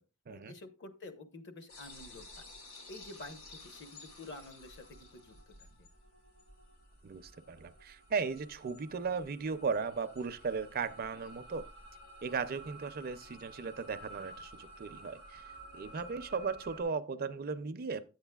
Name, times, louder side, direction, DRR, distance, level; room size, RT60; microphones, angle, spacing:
voice 1, 0.3-2.5 2.9-5.9 16.3-16.4, left 2 dB, 55° left, 1.1 m, -50 dB
sound 1, 1.7-16.8, equal, 80° left, 2.8 m, -53 dB
voice 2, 7.0-11.7 12.2-15.4 15.7-18.0, right 5 dB, 45° right, 0.5 m, -36 dB
10.5 x 8.0 x 2.3 m
head